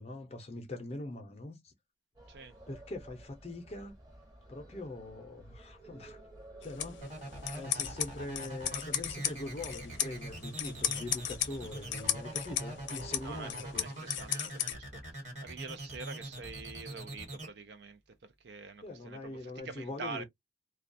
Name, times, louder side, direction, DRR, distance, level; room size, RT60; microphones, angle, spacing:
voice 1, 0.0-1.7 2.7-3.9 4.5-6.2 6.6-7.1 7.5-13.9 18.8-20.2, left 2 dB, 35° left, 0.5 m, -42 dB
sound 1, 2.2-13.8, right 1 dB, 20° right, 0.8 m, -54 dB
sound 2, 6.6-14.7, left 11 dB, 85° left, 0.5 m, -37 dB
sound 3, 7.0-17.5, right 1 dB, 40° right, 1.3 m, -43 dB
voice 2, 13.2-20.2, right 4 dB, 65° right, 0.5 m, -46 dB
2.3 x 2.2 x 2.5 m
head